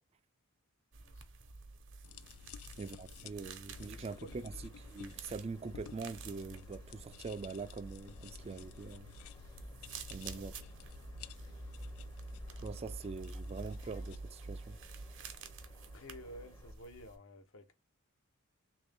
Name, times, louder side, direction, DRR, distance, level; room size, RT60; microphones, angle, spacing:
sound 1, 0.9-17.2, right 3 dB, 60° right, 0.7 m, -49 dB
voice 1, 1.0-1.5 3.0-3.2 4.0-4.4 10.3-10.5 11.9-12.1 15.9-17.7, equal, 60° left, 0.7 m, -53 dB
sound 2, 2.0-14.2, left 5 dB, 80° left, 0.3 m, -53 dB
voice 2, 2.8-4.5 4.9-9.1 10.1-10.5 12.6-14.8, right 4 dB, 30° right, 0.3 m, -43 dB
sound 3, 3.7-16.7, left 2 dB, 20° left, 0.6 m, -64 dB
3.4 x 2.6 x 3.4 m
head